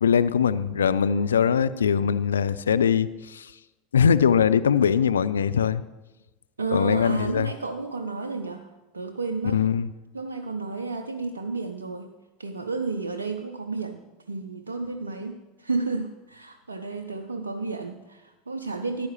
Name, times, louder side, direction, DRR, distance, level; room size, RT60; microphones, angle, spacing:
voice 1, 0.0-3.5 3.9-5.8 6.7-7.5 9.5-9.9, left 7 dB, 75° left, 15 dB, 0.3 m, -21 dB
voice 2, 6.6-9.6 10.1-12.1 12.4-14.0 14.3-19.1, right 3 dB, 85° right, 6 dB, 0.5 m, -32 dB
14.0 x 11.0 x 3.1 m, 1.1 s
figure-of-eight pair, 75°, 0 cm